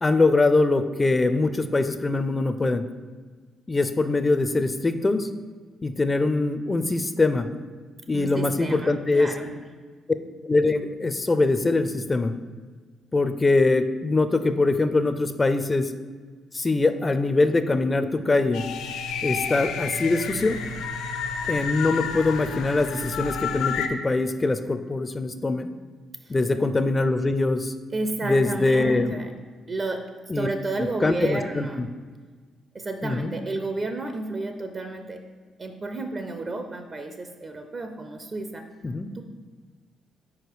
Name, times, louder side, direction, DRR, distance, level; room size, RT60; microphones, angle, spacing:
voice 1, 0.0-2.8 3.7-5.3 5.8-7.5 8.1-9.3 10.4-12.3 13.1-15.9 16.5-18.7 19.2-20.6 21.5-25.7 26.3-27.7 28.2-29.1 30.3-30.5 30.8-31.9 33.0-33.3 38.8-39.1, left 3 dB, 25° left, 10 dB, 0.4 m, -23 dB
voice 2, 8.1-9.5 26.2-26.3 27.9-29.3 29.7-30.1 30.3-31.8 32.7-35.2 35.6-38.7 39.1-39.2, right 2 dB, 35° right, 6 dB, 0.5 m, -31 dB
sound 1, 18.5-23.9, left 6 dB, 85° left, 0.4 m, -30 dB
4.8 x 4.7 x 4.6 m, 1.5 s
cardioid pair, 90°, 0 cm